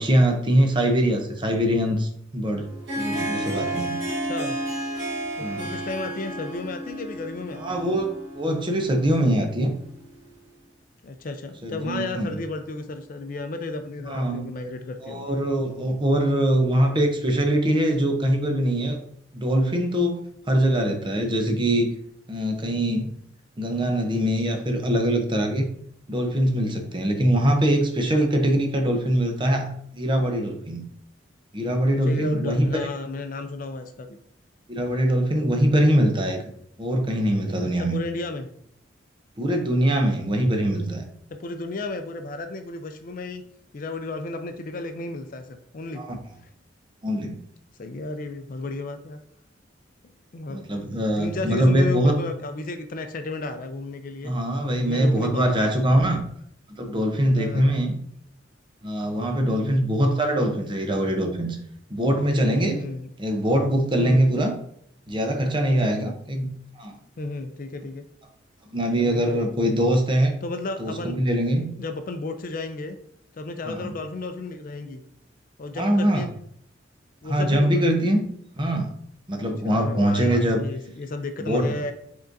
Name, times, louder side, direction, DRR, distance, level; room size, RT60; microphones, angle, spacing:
voice 1, 0.0-2.7 3.0-4.0 5.4-5.8 7.6-9.7 11.6-12.3 14.1-14.5 15.0-19.0 19.3-20.2 20.5-21.9 22.3-23.1 23.6-25.7 26.1-30.8 31.5-32.7 34.7-36.4 36.8-38.0 39.4-41.0 46.0-46.2 47.0-47.4 50.5-52.2 54.2-56.3 56.7-58.0 58.8-61.6 61.9-62.8 63.2-64.5 65.1-67.0 68.7-70.3 70.8-71.7 73.7-73.9 75.8-76.2 77.3-78.3 78.6-78.9 79.3-80.7 81.5-81.8, right 1 dB, 25° right, 3 dB, 0.7 m, -23 dB
Harp, 2.6-10.3, right 1 dB, 85° right, 1.4 m, -32 dB
voice 2, 4.2-4.6 5.4-7.9 11.0-15.4 32.1-34.2 37.6-38.5 41.3-43.4 43.7-46.0 46.4-46.5 47.8-49.2 50.3-54.3 54.8-56.1 57.4-57.8 59.5-59.8 62.7-63.1 64.0-64.3 65.7-66.2 67.2-68.0 69.0-69.5 70.4-71.2 71.8-73.0 73.3-75.0 75.6-76.3 77.2-77.9 79.4-81.9, left 2 dB, 45° left, 8 dB, 0.4 m, -33 dB
5.4 x 3.8 x 2.6 m, 0.69 s
head